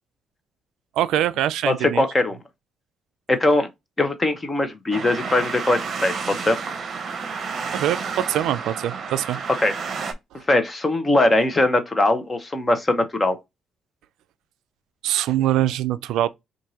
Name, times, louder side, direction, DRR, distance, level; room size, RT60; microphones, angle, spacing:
voice 1, 1.0-2.0 7.7-9.4 15.0-16.3, right 12 dB, 85° right, 0.3 m, -23 dB
voice 2, 1.6-2.4 3.3-3.7 4.0-6.6 9.6-9.7 10.5-13.4, left 2 dB, 25° left, 0.9 m, -21 dB
sound 1, 4.9-10.1, right 5 dB, 50° right, 0.8 m, -30 dB
4.6 x 2.5 x 2.8 m
cardioid pair, 90°, 0 cm